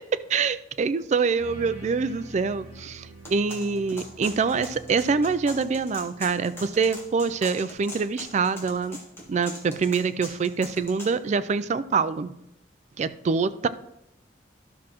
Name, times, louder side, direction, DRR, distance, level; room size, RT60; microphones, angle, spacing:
voice 1, 0.0-9.0 9.3-12.3 13.0-13.7, right 5 dB, 40° right, 14 dB, 0.3 m, -25 dB
sound 1, 1.4-7.0, right 2 dB, 10° right, 2.4 m, -46 dB
sound 2, 3.2-11.1, left 1 dB, 15° left, 1.7 m, -41 dB
12.5 x 6.1 x 3.0 m, 0.84 s
head